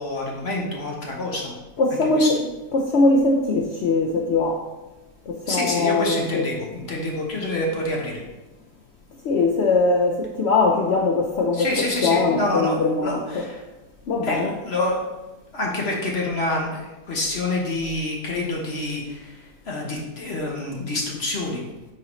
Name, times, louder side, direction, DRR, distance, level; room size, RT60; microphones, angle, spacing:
voice 1, 0.0-1.5 2.1-2.3 5.5-8.2 11.5-12.7 13.0-13.6 14.2-15.0 15.5-21.6, left 2 dB, 45° left, -2 dB, 1.1 m, -27 dB
voice 2, 1.8-2.4 2.7-4.6 5.3-6.5 9.2-11.7 12.0-13.5 14.1-14.5, left 3 dB, 85° left, 2 dB, 0.6 m, -21 dB
8.6 x 3.8 x 3.1 m, 1.1 s
omnidirectional pair, 1.7 m